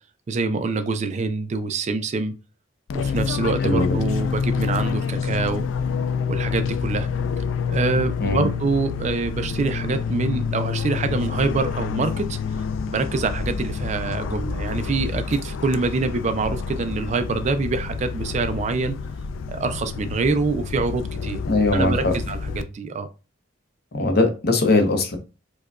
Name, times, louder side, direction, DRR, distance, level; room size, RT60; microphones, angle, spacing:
voice 1, 0.3-2.3 2.9-5.7 6.3-7.1 7.7-12.4 12.9-19.0 19.5-21.4 21.7-23.1, right 3 dB, 35° right, 0.3 m, -25 dB
Fixed-wing aircraft airplane, 2.9-22.6, left 6 dB, 85° left, 0.3 m, -28 dB
voice 2, 3.6-4.0 8.2-8.4 21.5-22.1 23.9-25.2, left 2 dB, 55° left, 0.7 m, -20 dB
4.7 x 2.2 x 2.3 m
head